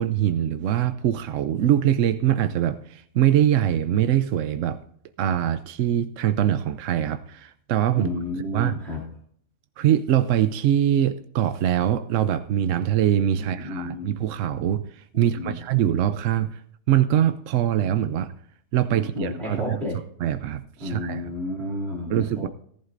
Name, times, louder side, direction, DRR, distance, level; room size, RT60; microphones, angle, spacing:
voice 1, 0.0-4.8 5.2-8.1 8.5-8.8 9.8-16.6 16.9-18.3 18.7-19.8 20.2-21.2 22.1-22.5, right 11 dB, 80° right, 11 dB, 1.0 m, -23 dB
voice 2, 8.0-9.0 13.3-14.1 15.1-15.6 18.9-20.0 20.8-22.5, left 2 dB, 55° right, -4 dB, 3.1 m, -31 dB
18.5 x 11.0 x 2.6 m, 0.63 s
omnidirectional pair, 1.3 m